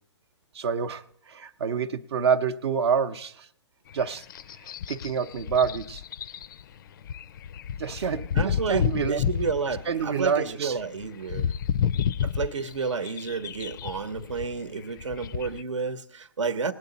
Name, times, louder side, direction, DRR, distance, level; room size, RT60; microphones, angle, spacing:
voice 1, 0.5-3.5 3.9-4.2 4.6-6.0 7.8-9.2 9.9-10.8, right 6 dB, 60° right, 7 dB, 0.7 m, -27 dB
sound 1, 3.9-15.6, left 8 dB, 45° left, 0.4 m, -31 dB
voice 2, 8.3-11.5 12.2-16.7, right 5 dB, 80° right, 13 dB, 1.1 m, -31 dB
19.0 x 8.6 x 4.0 m, 0.68 s
hypercardioid pair, 145°, 15 cm